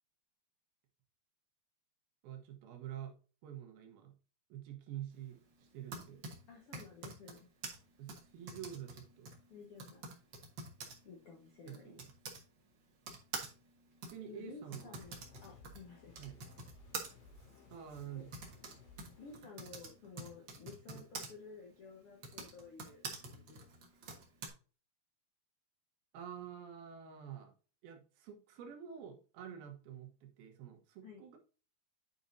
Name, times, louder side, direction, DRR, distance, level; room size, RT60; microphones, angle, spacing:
voice 1, 2.2-3.1 3.4-4.1 4.5-6.2 8.0-9.3 11.7-12.1 14.1-15.0 16.2-16.4 17.7-18.5 20.9-21.0 26.1-27.5 27.8-31.4, right 10 dB, 80° right, 3 dB, 3.1 m, -48 dB
Typing, 5.6-12.4 13.0-21.3 22.1-24.5, right 4 dB, 65° right, 1.1 m, -48 dB
voice 2, 6.5-7.5 9.5-10.0 11.0-11.9 14.2-15.2 15.4-16.2 18.1-18.2 19.2-23.7 31.0-31.2, left 4 dB, 70° left, -1 dB, 1.4 m, -53 dB
sound 1, 15.0-19.4, left 3 dB, 50° left, 3.0 m, -59 dB
9.6 x 5.3 x 2.6 m, 0.36 s
omnidirectional pair, 4.3 m